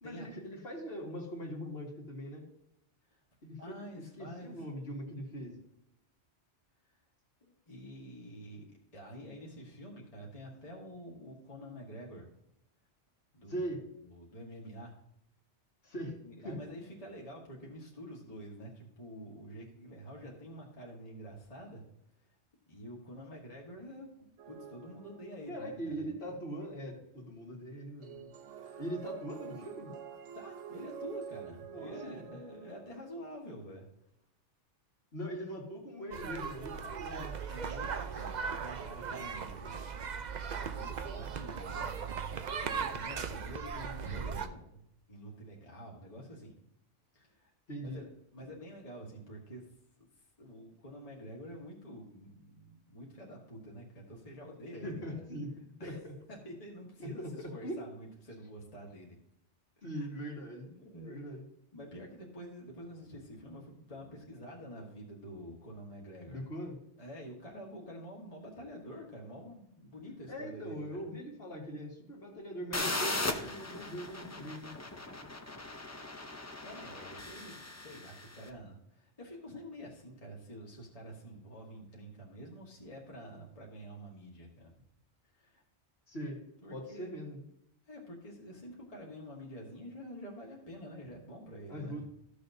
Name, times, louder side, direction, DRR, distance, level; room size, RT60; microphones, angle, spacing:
voice 1, 0.0-2.4 3.4-3.7 4.2-5.5 13.5-13.8 15.8-16.2 16.4-16.6 25.5-28.3 28.8-29.9 31.7-32.4 35.1-37.4 47.7-48.0 54.8-55.5 55.8-56.1 57.0-57.8 59.8-61.5 66.3-66.8 70.3-74.8 86.1-86.4 86.7-87.4 91.7-92.0, equal, 60° left, -2 dB, 2.3 m, -41 dB
voice 2, 3.6-4.6 7.4-12.3 13.3-13.7 14.0-14.9 16.2-21.8 22.7-26.1 28.5-28.9 30.3-34.1 37.5-46.5 47.1-49.7 50.0-50.1 50.4-55.2 55.8-56.0 56.3-59.2 59.9-60.1 60.8-61.2 61.7-66.4 67.0-71.0 76.6-84.7 85.3-85.6 86.6-87.2 87.9-92.0, equal, 30° left, -2 dB, 1.7 m, -48 dB
sound 1, 24.4-25.7 28.0-33.3, right 7 dB, 80° right, 1.1 m, -47 dB
sound 2, 36.1-44.5, right 6 dB, 45° right, 0.6 m, -38 dB
sound 3, 72.7-78.4, left 2 dB, 15° left, 0.6 m, -38 dB
14.0 x 6.6 x 2.7 m, 0.77 s
omnidirectional pair, 1.2 m